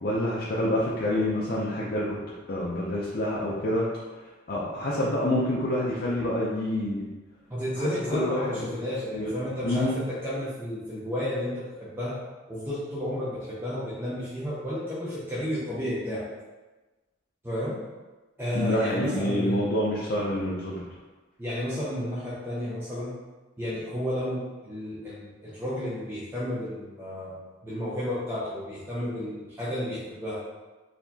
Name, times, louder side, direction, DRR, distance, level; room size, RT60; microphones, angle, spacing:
voice 1, 0.0-2.2 2.5-3.9 4.2-7.1 7.8-8.7 9.1-9.3 9.6-10.0 18.5-20.8, left 1 dB, 50° left, -6 dB, 0.5 m, -27 dB
voice 2, 7.5-12.1 12.5-16.2 17.4-17.8 18.4-19.6 21.4-23.1 23.6-30.4, equal, 10° right, -9 dB, 0.6 m, -32 dB
4.2 x 2.8 x 2.7 m, 1.2 s
head